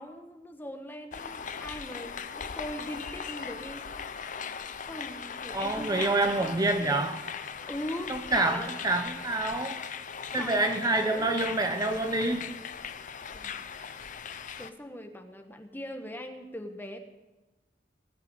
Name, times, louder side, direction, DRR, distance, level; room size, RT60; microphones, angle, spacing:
voice 1, 0.0-3.8 4.9-7.1 7.6-8.7 10.4-10.7 11.0-11.3 13.3-13.6 14.6-17.0, left 1 dB, 10° left, 5 dB, 1.2 m, -41 dB
sound 1, 1.1-14.7, left 6 dB, 45° left, 0.6 m, -39 dB
voice 2, 5.5-7.2 8.1-9.8 10.3-12.5, right 2 dB, 20° right, 6 dB, 0.8 m, -27 dB
19.0 x 6.5 x 9.0 m, 1.1 s
head